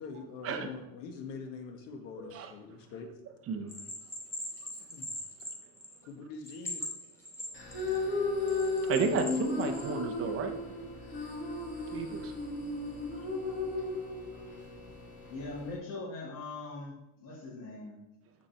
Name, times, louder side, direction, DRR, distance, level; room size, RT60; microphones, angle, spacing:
voice 1, 0.0-3.1 4.9-5.1 6.1-6.8, left 4 dB, 80° left, 6 dB, 1.7 m, -44 dB
voice 2, 2.2-2.5 3.5-3.7 8.9-10.5 11.9-12.3, right 5 dB, 35° right, 4 dB, 1.2 m, -32 dB
Bell, 3.7-6.1 6.4-8.0 8.5-9.9, left 1 dB, 5° left, 2.2 m, -40 dB
sound 1, 7.5-15.7, left 3 dB, 25° left, 2.8 m, -35 dB
voice 3, 15.3-16.9 17.2-18.0, left 3 dB, 50° left, -8 dB, 3.0 m, -41 dB
14.5 x 5.3 x 4.5 m, 0.90 s
cardioid pair, 170°, 41 cm